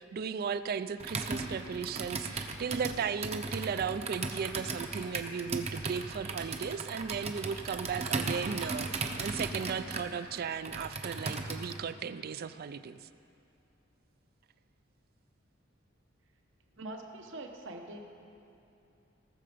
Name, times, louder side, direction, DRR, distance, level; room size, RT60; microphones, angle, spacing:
voice 1, 0.0-13.1, right 6 dB, 50° right, 13 dB, 0.3 m, -36 dB
Computer keyboard, 1.0-11.8, right 3 dB, 35° right, 0.7 m, -37 dB
voice 2, 16.8-18.0, right 2 dB, 65° right, 3 dB, 1.0 m, -43 dB
18.5 x 6.8 x 5.0 m, 2.7 s
head